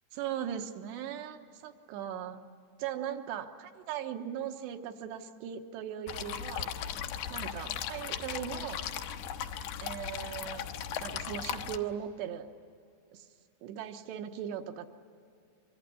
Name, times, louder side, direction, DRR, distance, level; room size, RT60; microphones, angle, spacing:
voice 1, 0.1-2.4 2.8-6.7 7.3-8.8 9.8-10.7 11.0-12.5 13.1-13.3 13.6-14.9, right 9 dB, 75° right, 7 dB, 3.3 m, -38 dB
sound 1, 6.1-11.8, left 9 dB, 75° left, 2.8 m, -37 dB
25.0 x 23.5 x 9.8 m, 2.4 s
omnidirectional pair, 5.0 m